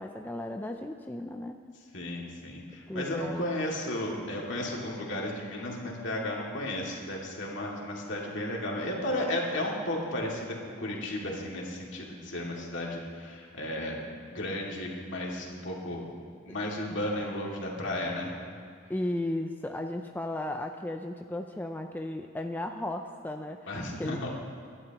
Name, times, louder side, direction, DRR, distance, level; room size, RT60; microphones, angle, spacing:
voice 1, 0.0-1.6 2.9-3.5 18.9-23.6 24.0-24.3, left 1 dB, 10° left, 4 dB, 0.4 m, -35 dB
voice 2, 1.9-16.0 16.4-18.3 23.7-24.3, left 1 dB, 60° left, -2 dB, 2.3 m, -34 dB
21.5 x 11.0 x 3.0 m, 2.2 s
head